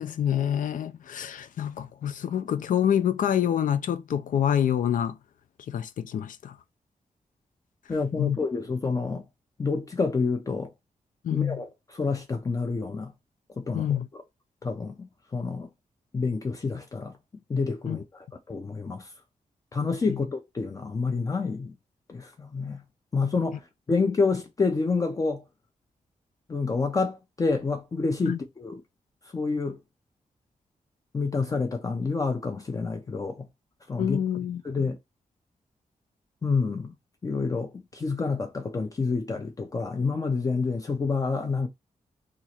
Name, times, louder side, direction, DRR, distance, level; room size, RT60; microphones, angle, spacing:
voice 1, 0.0-5.2 5.7-6.6 8.2-8.4 11.2-11.6 13.7-14.1 17.9-18.0 20.1-20.2 28.3-28.4 34.0-34.6, left 9 dB, 80° left, 0.5 m, -26 dB
voice 2, 7.9-9.3 9.6-10.7 11.3-13.1 13.6-14.2 14.6-15.7 16.1-17.1 17.5-19.1 19.7-21.7 22.1-22.8 23.1-25.4 26.5-28.8 29.3-29.8 31.1-33.5 33.9-34.2 34.6-35.0 36.4-36.9 37.2-41.7, left 4 dB, 25° left, 0.4 m, -28 dB
3.0 x 2.4 x 4.2 m
wide cardioid pair, 170°, 14 cm